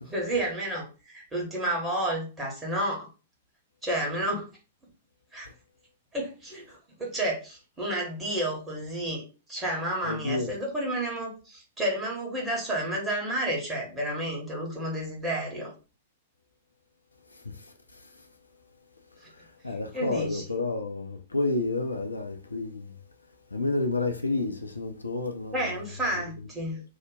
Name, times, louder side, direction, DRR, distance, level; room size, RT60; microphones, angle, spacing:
voice 1, 0.0-3.1 3.8-4.5 5.3-5.5 6.1-9.2 9.5-15.7 19.2-19.3 19.7-20.4 25.5-26.8, right 1 dB, 15° right, 1.2 m, -31 dB
voice 2, 10.1-10.5 17.5-17.6 19.6-22.9 23.5-25.7 26.1-26.2, left 2 dB, 80° left, 0.5 m, -30 dB
2.8 x 2.1 x 3.7 m
figure-of-eight pair, 105°, 0 cm